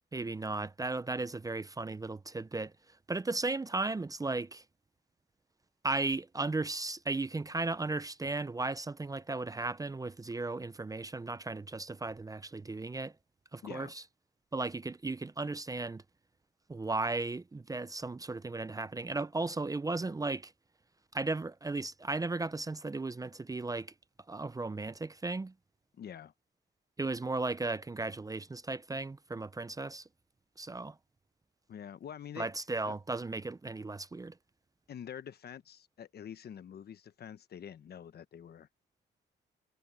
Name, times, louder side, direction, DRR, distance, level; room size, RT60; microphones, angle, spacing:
voice 1, 0.1-4.6 5.8-13.1 13.5-14.0 14.5-16.0 16.7-20.5 21.1-23.9 24.3-25.5 27.0-30.1 30.6-31.0 32.4-34.4, right 3 dB, 15° right, 0.6 m, -35 dB
voice 2, 13.6-13.9 25.9-26.3 31.7-32.5 32.8-33.0 34.9-38.7, left 9 dB, 55° left, 1.0 m, -46 dB
cardioid pair, 90°, 20 cm